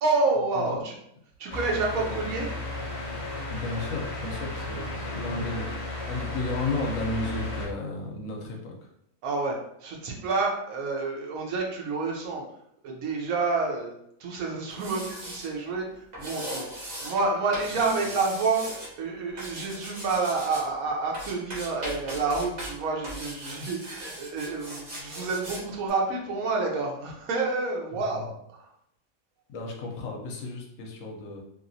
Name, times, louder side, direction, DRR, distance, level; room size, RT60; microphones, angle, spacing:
voice 1, 0.0-0.9 1.4-2.5 9.2-12.4 12.8-13.9 14.2-28.3 28.5-28.7, right 3 dB, 75° right, 0 dB, 1.1 m, -29 dB
sound 1, 1.5-7.7, left 2 dB, 35° left, 0.5 m, -34 dB
voice 2, 3.5-8.7 29.5-31.4, left 3 dB, 65° left, 0 dB, 1.0 m, -33 dB
sound 2, 14.7-15.5 16.1-17.2 17.5-18.9 19.4-20.7 21.1-22.7 23.0-25.6 25.9-26.0, right 1 dB, 35° right, 0.8 m, -38 dB
2.9 x 2.9 x 2.6 m, 0.74 s
omnidirectional pair, 1.5 m